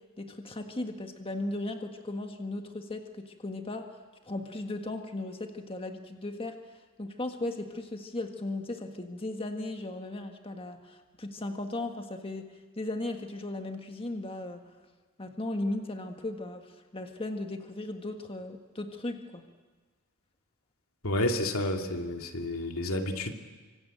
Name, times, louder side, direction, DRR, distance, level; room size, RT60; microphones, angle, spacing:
voice 1, 0.2-4.0 4.2-6.6 7.0-14.6 15.2-19.4, left 2 dB, 25° left, 5 dB, 1.7 m, -36 dB
voice 2, 21.0-23.3, left 1 dB, 75° left, 3 dB, 2.6 m, -30 dB
25.5 x 25.5 x 9.0 m, 1.3 s
head